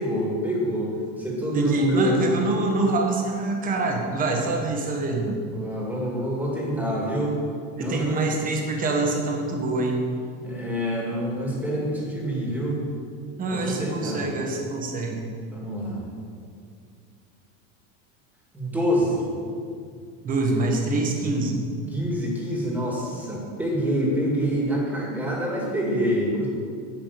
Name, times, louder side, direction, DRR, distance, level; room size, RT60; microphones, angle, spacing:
voice 1, 0.0-2.3 5.5-7.4 7.7-8.3 9.0-9.1 10.4-12.8 13.5-14.3 15.5-16.0 18.5-19.3 21.9-26.5, equal, 5° right, -3 dB, 2.1 m, -26 dB
voice 2, 1.5-5.4 7.8-10.0 13.4-15.2 20.2-21.6, right 2 dB, 20° right, 1 dB, 1.4 m, -25 dB
10.5 x 5.8 x 8.4 m, 2.3 s
cardioid pair, 170°, 38 cm